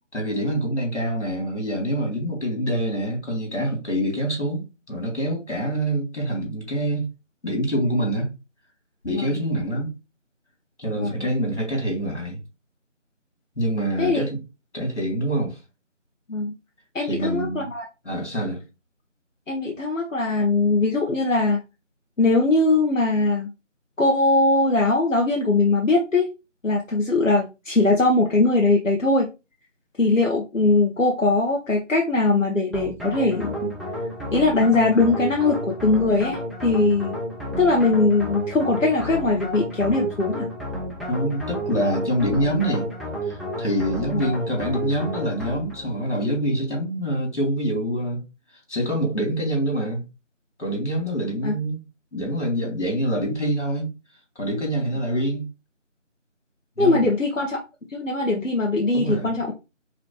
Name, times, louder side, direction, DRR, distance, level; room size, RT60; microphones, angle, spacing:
voice 1, 0.1-7.1 7.4-8.3 9.0-9.9 10.8-12.4 13.6-14.4 14.7-15.6 17.0-17.7 18.0-18.6 41.1-42.9 43.2-48.2 48.7-50.0 50.6-51.8 52.1-53.9 54.3-55.5 56.8-57.1 58.9-59.3, equal, 65° left, 3.0 m, -25 dB
voice 2, 16.9-17.8 19.5-21.6 22.2-23.5 24.0-26.3 26.6-29.3 30.0-33.7 34.3-37.1 37.6-40.5 44.1-44.2 51.4-51.5 56.8-57.6 57.9-59.5, left 3 dB, 85° left, 1.1 m, -21 dB
sound 1, 32.7-45.9, equal, ahead, 0.6 m, -31 dB
5.1 x 3.1 x 2.9 m
figure-of-eight pair, 180°, 38 cm